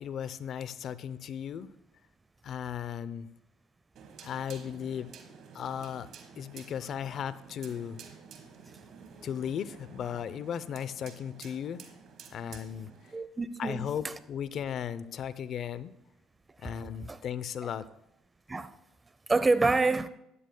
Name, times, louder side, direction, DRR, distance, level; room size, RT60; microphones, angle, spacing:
voice 1, 0.0-1.7 2.4-3.3 4.2-5.1 5.5-6.1 6.4-8.0 9.2-11.8 12.3-12.9 13.6-15.9 16.6-17.8, left 8 dB, 55° left, 0.6 m, -36 dB
sound 1, 4.0-13.2, right 6 dB, 60° right, 1.4 m, -51 dB
voice 2, 13.1-14.1 16.6-17.2 18.5-18.7 19.3-20.1, right 3 dB, 20° right, 0.7 m, -28 dB
14.0 x 10.0 x 2.2 m
supercardioid pair, 75°, 0 cm